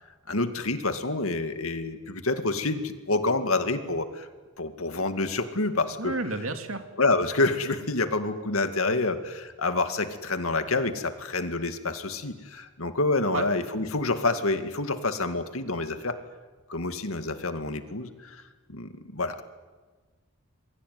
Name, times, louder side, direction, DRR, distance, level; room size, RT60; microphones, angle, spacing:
voice 1, 0.3-4.3 4.6-6.1 7.0-16.1 16.7-18.4 18.7-19.4, left 3 dB, 85° left, 8 dB, 2.2 m, -28 dB
voice 2, 6.0-6.8 13.3-13.5, right 2 dB, 75° right, 6 dB, 2.7 m, -31 dB
27.5 x 22.5 x 9.5 m, 1.3 s
head